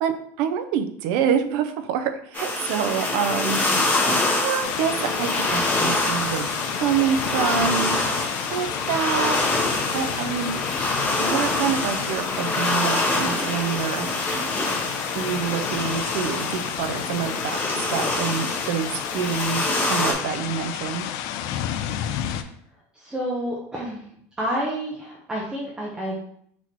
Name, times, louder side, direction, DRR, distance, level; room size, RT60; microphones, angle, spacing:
voice 1, 0.0-3.6 4.4-8.0 8.5-9.4 9.9-10.5 11.2-14.1 15.1-21.1, right 8 dB, 65° right, 8 dB, 0.5 m, -26 dB
sound 1, 2.3-20.1, left 2 dB, 25° left, 1.0 m, -26 dB
sound 2, 4.6-22.4, left 10 dB, 55° left, 0.3 m, -31 dB
voice 2, 22.9-24.1 24.4-26.2, equal, 10° right, -5 dB, 0.6 m, -29 dB
4.1 x 2.9 x 4.5 m, 0.67 s
cardioid pair, 175°, 7 cm